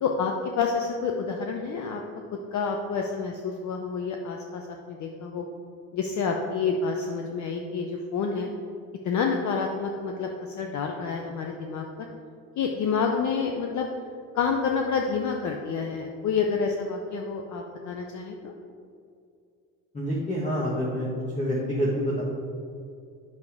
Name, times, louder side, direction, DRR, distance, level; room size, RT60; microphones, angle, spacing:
voice 1, 0.0-2.0 2.3-5.4 5.9-8.5 9.0-12.1 12.6-13.9 14.3-18.5, left 5 dB, 45° left, 3 dB, 0.7 m, -28 dB
voice 2, 19.9-21.1 21.4-22.2, equal, 20° left, -4 dB, 1.4 m, -27 dB
8.4 x 6.4 x 3.6 m, 2.4 s
supercardioid pair, 95°, 41 cm